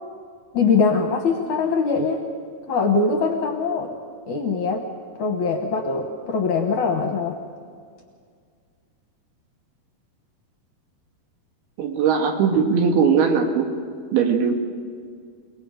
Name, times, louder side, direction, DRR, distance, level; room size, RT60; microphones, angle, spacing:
voice 1, 0.5-2.2 2.7-3.9 4.3-4.8 5.2-7.4, left 4 dB, 65° left, 3 dB, 2.1 m, -22 dB
voice 2, 11.8-13.7 14.1-14.5, right 6 dB, 70° right, 3 dB, 3.5 m, -19 dB
29.0 x 19.5 x 5.2 m, 2.1 s
omnidirectional pair, 4.7 m